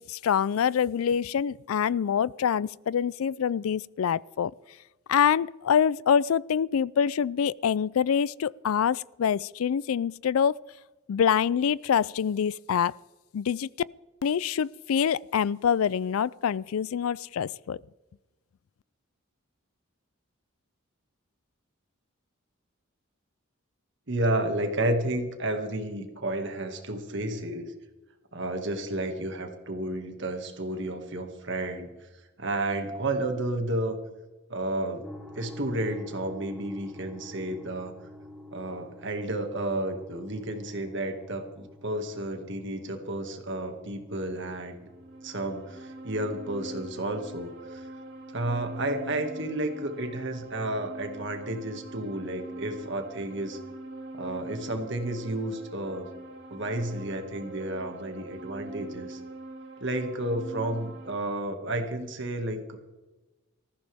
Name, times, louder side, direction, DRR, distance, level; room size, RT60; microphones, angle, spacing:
voice 1, 0.0-4.5 5.1-10.6 11.1-12.9 13.3-13.7 14.2-17.8, left 7 dB, 90° left, 0.4 m, -25 dB
voice 2, 24.1-27.7 28.3-31.9 32.4-34.0 34.5-35.1 35.4-37.9 38.5-44.8 45.2-47.9 48.3-53.6 54.1-56.1 56.5-59.2 59.8-62.8, right 1 dB, 60° right, 2.0 m, -31 dB
sound 1, 35.0-48.7, left 1 dB, 5° left, 1.6 m, -48 dB
sound 2, 44.8-61.1, right 2 dB, 85° right, 4.8 m, -43 dB
19.0 x 15.0 x 3.5 m
head